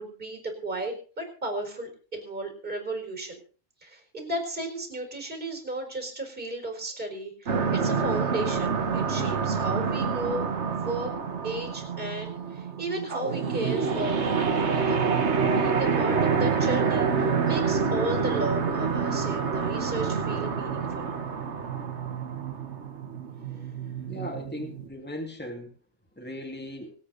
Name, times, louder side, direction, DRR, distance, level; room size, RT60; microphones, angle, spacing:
voice 1, 0.0-3.4 3.8-11.1 11.4-21.1 23.5-23.7, right 2 dB, 45° right, 3 dB, 4.8 m, -34 dB
sound 1, 7.5-24.9, right 5 dB, 60° right, 1.6 m, -27 dB
voice 2, 24.1-25.7 26.2-26.9, left 1 dB, 10° left, 0 dB, 2.4 m, -37 dB
25.5 x 8.6 x 4.0 m, 0.40 s
omnidirectional pair, 1.3 m